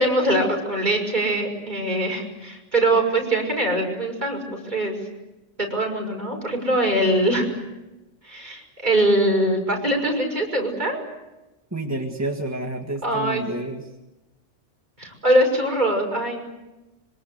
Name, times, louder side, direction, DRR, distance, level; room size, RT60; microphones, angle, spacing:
voice 1, 0.0-4.9 5.6-7.4 8.2-11.0 13.0-13.7 15.0-16.4, right 1 dB, 40° right, 0 dB, 6.3 m, -22 dB
voice 2, 11.7-13.8, right 1 dB, 15° right, 1 dB, 1.8 m, -29 dB
26.0 x 24.0 x 8.1 m, 1.0 s
omnidirectional pair, 1.2 m